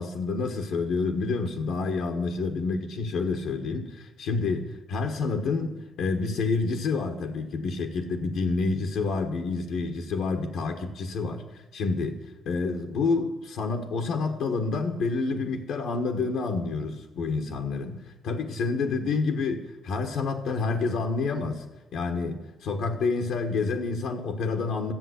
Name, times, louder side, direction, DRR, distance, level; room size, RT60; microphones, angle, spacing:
voice 1, 0.0-11.4 11.7-12.2 12.4-17.9 18.2-21.6 21.9-24.9, left 4 dB, 80° left, 4 dB, 1.4 m, -28 dB
12.5 x 7.5 x 8.2 m, 1.0 s
cardioid pair, 90°, 0 cm